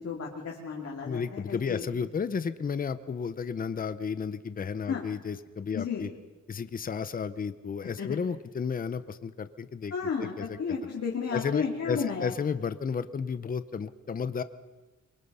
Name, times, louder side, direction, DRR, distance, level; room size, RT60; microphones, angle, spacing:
voice 1, 0.0-1.8 4.9-5.0 5.7-6.0 8.0-8.2 9.9-12.3, left 6 dB, 55° left, -2 dB, 2.7 m, -33 dB
voice 2, 1.0-6.1 6.5-9.9 10.2-10.6 11.3-14.4, left 6 dB, 30° left, 13 dB, 0.7 m, -33 dB
24.0 x 23.5 x 5.6 m, 1.2 s
wide cardioid pair, 180°, 30 cm